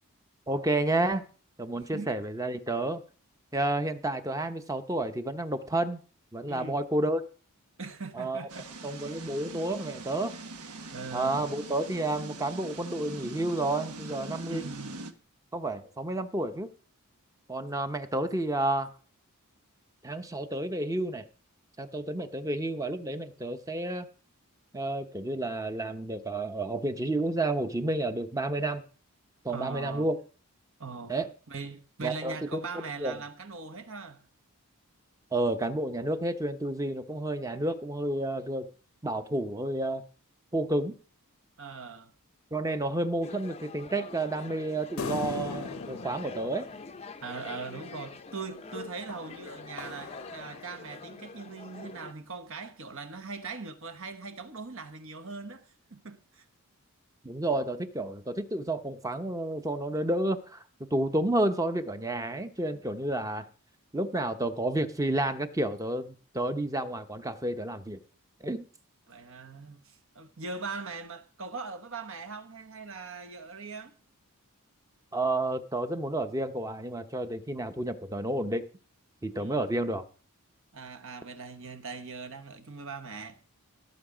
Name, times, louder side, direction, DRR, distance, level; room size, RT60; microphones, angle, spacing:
voice 1, 0.5-1.2 1.6-3.0 3.5-6.0 6.3-7.2 8.2-8.4 8.8-10.3 11.1-14.6 15.5-16.7 17.5-18.9 20.0-21.2 21.8-24.1 24.7-28.8 29.4-30.2 31.1-31.3 32.0-32.6 33.0-33.2 35.3-38.7 39.0-40.0 40.5-40.9 42.5-46.7 57.2-60.6 60.9-63.4 63.9-68.0 68.4-68.6 75.1-78.6 79.2-80.0, right 1 dB, 15° right, 0.8 m, -30 dB
voice 2, 1.7-2.1 6.5-6.8 7.8-8.7 10.9-11.5 14.5-15.0 29.5-30.1 30.8-31.2 31.5-34.2 41.6-42.1 47.2-56.4 69.1-74.0 79.4-79.8 80.7-83.4, right 4 dB, 60° right, 1.2 m, -41 dB
sound 1, 8.5-15.1, right 2 dB, 90° right, 1.3 m, -42 dB
sound 2, 43.2-52.1, left 4 dB, 30° left, 0.6 m, -45 dB
sound 3, 45.0-47.7 49.1-51.2, left 4 dB, 65° left, 0.7 m, -40 dB
17.5 x 7.0 x 5.0 m
head